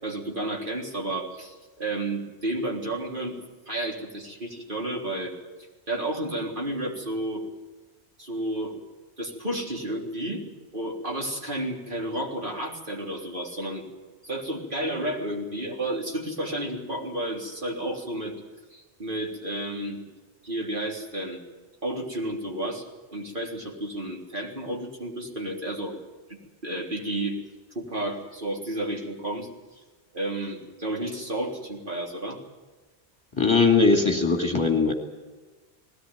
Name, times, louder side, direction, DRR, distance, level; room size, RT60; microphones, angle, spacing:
voice 1, 0.0-3.4 3.7-5.3 5.9-7.4 8.2-8.7 9.2-10.4 10.7-13.8 14.2-18.3 18.7-20.0 20.4-21.4 21.8-22.8 23.1-26.0 26.6-27.4 27.7-29.5 30.1-32.4, right 1 dB, 50° right, -1 dB, 3.9 m, -31 dB
voice 2, 33.4-34.9, left 4 dB, 25° left, 3 dB, 2.4 m, -20 dB
20.5 x 18.0 x 9.3 m, 1.3 s
omnidirectional pair, 1.1 m